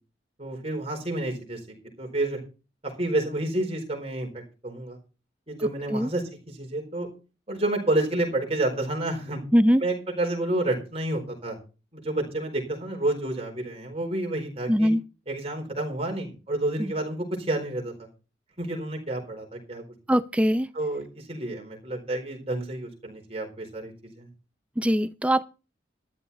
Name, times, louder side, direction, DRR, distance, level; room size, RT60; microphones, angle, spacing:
voice 1, 0.4-1.6 2.0-2.4 3.0-5.0 5.5-7.1 7.5-9.4 9.8-11.6 11.9-14.9 15.3-17.9 18.6-19.8 20.7-24.3, right 2 dB, 35° right, 4.4 m, -29 dB
voice 2, 14.7-15.0 16.8-16.9 20.1-20.7 24.8-25.4, equal, 5° right, 0.5 m, -21 dB
13.0 x 11.5 x 4.2 m
head